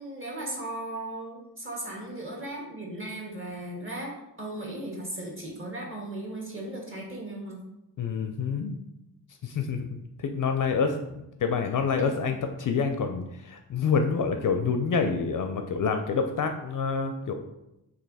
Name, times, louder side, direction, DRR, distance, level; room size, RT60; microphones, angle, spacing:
voice 1, 0.0-7.6 12.0-12.1, right 1 dB, 30° right, -1 dB, 1.4 m, -37 dB
voice 2, 8.0-8.8 9.4-17.3, left 5 dB, 45° left, 6 dB, 0.4 m, -27 dB
3.1 x 2.6 x 4.0 m, 0.88 s
supercardioid pair, 40°, 44 cm